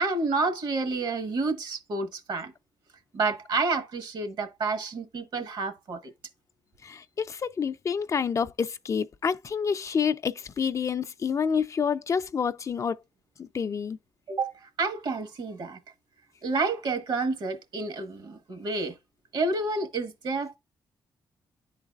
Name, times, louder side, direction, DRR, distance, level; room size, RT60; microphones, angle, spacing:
voice 1, 0.0-2.5 3.1-6.1 14.3-15.8 16.4-19.0 19.3-20.6, right 3 dB, 70° right, 1.3 m, -29 dB
voice 2, 6.8-13.0 13.4-14.0, left 6 dB, 40° left, 0.4 m, -28 dB
10.5 x 4.0 x 2.3 m
cardioid pair, 90°, 8 cm